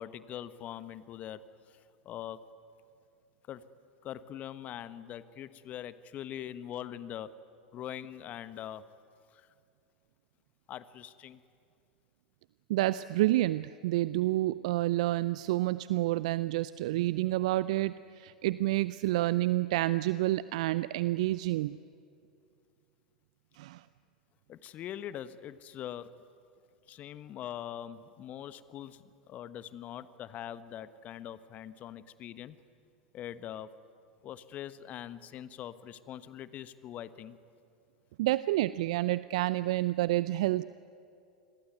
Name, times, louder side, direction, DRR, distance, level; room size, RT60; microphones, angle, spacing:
voice 1, 0.0-1.4 1.7-1.8 2.0-2.4 3.5-3.6 4.0-7.3 7.7-8.8 9.3-9.5 10.7-11.4 24.5-26.1 26.9-32.6 33.1-33.7 34.2-37.4, left 11 dB, 40° left, 15 dB, 1.2 m, -42 dB
voice 2, 12.7-21.8 23.6-23.8 38.2-40.6, right 16 dB, 60° right, 17 dB, 0.6 m, -29 dB
28.5 x 22.0 x 9.4 m, 2.5 s
figure-of-eight pair, 85°, 4 cm